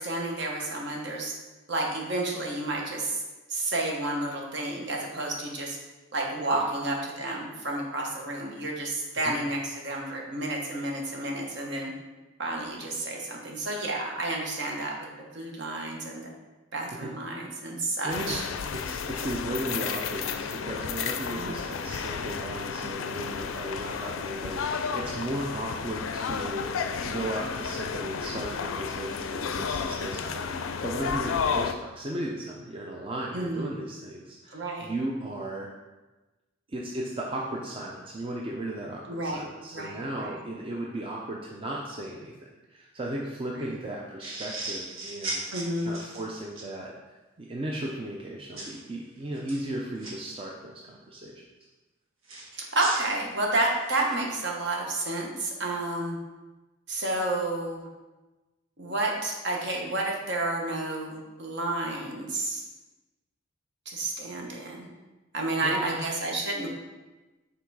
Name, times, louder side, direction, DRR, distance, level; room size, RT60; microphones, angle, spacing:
voice 1, 0.0-1.3 1.7-3.2 3.5-5.8 6.1-11.9 12.4-14.9 15.3-16.2 16.7-18.4 21.3-21.5 33.3-33.7 34.5-34.9 39.1-39.4 39.7-40.4 43.6-43.7 45.5-46.0 52.5-56.2 56.9-57.9 58.8-62.6 63.9-64.9 65.3-66.7, right 2 dB, 55° right, -1 dB, 1.2 m, -30 dB
voice 2, 18.0-18.4 18.8-26.7 27.0-35.7 36.7-45.5 45.8-46.9 47.4-51.4 65.6-66.0, right 1 dB, 25° right, -2 dB, 0.5 m, -36 dB
sound 1, 18.1-31.7, left 6 dB, 70° left, 0.4 m, -32 dB
sound 2, 44.2-46.7 48.6-48.8 49.3-50.1 52.3-54.1, right 2 dB, 75° right, 1.5 m, -37 dB
5.9 x 3.8 x 4.7 m, 1.1 s
head